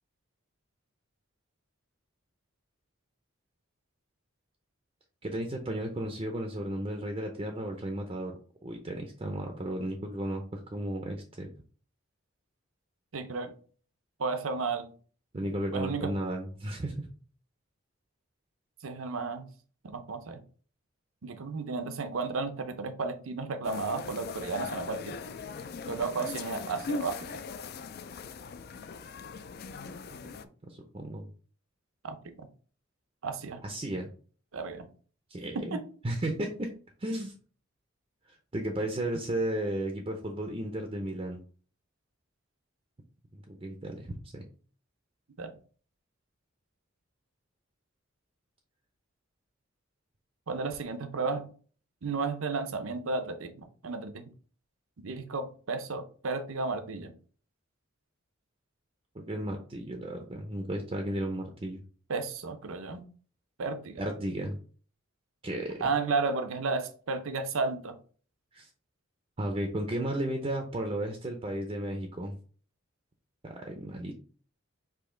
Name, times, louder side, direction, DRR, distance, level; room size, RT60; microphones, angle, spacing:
voice 1, 5.2-8.3 8.6-11.5 15.3-17.1 30.7-31.2 33.6-34.1 35.3-35.8 36.0-36.7 37.0-37.3 38.3-41.4 43.3-44.4 59.1-61.8 64.0-64.6 65.4-65.9 68.5-68.7 69.4-72.4 73.4-74.1, right 1 dB, 25° right, 0.5 m, -34 dB
voice 2, 13.1-13.5 14.2-14.9 15.7-16.1 18.8-19.5 19.8-20.4 21.2-25.2 25.9-27.2 32.0-32.3 33.2-33.6 34.5-34.9 35.7-35.8 45.4-45.5 50.5-51.5 52.0-54.3 55.0-57.1 62.1-63.0 63.6-64.1 65.8-68.0, right 4 dB, 80° right, 0.7 m, -33 dB
sound 1, 23.6-30.4, left 4 dB, 50° left, 0.3 m, -40 dB
4.9 x 2.9 x 3.7 m
head